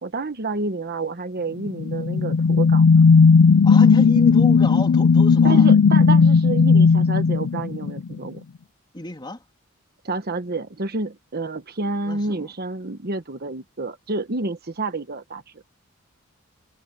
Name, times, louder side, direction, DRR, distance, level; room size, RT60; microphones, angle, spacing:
voice 1, 0.0-2.8 5.4-8.4 10.0-15.4, right 3 dB, 50° right, 1.2 m, -29 dB
sound 1, 1.7-8.2, left 5 dB, 80° left, 0.5 m, -15 dB
voice 2, 3.6-5.7 8.9-9.4 12.0-12.5, left 1 dB, 20° left, 3.2 m, -31 dB
head